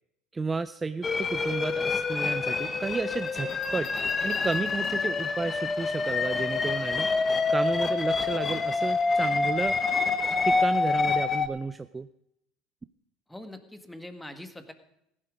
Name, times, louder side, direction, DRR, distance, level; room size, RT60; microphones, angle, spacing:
voice 1, 0.3-3.9 4.2-7.1 7.5-9.8 10.4-12.1, right 3 dB, 20° right, 13 dB, 0.5 m, -32 dB
sound 1, 1.0-11.5, left 4 dB, 25° left, 1.2 m, -27 dB
sound 2, 3.3-5.2 6.8-7.2, left 5 dB, 60° left, 4.4 m, -52 dB
voice 2, 13.3-14.7, left 1 dB, 5° left, 8 dB, 1.8 m, -43 dB
15.5 x 11.0 x 5.3 m, 0.78 s
hypercardioid pair, 85°, 0 cm